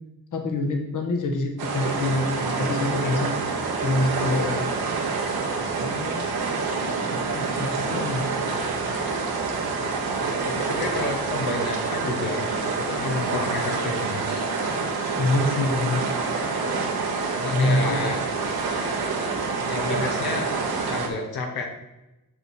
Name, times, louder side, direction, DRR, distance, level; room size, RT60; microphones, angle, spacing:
voice 1, 0.3-3.4 3.8-4.7 7.3-8.3 15.2-16.1 17.5-18.0, left 2 dB, 55° left, 3 dB, 1.4 m, -25 dB
sound 1, 1.6-21.1, right 4 dB, 85° right, 1.5 m, -27 dB
voice 2, 5.7-6.3 6.6-6.8 7.3-7.5 10.4-14.4 17.3-18.2 19.7-20.5 20.9-21.7, left 3 dB, 80° left, 1 dB, 1.3 m, -31 dB
6.6 x 6.3 x 4.4 m, 0.97 s
cardioid pair, 95°, 36 cm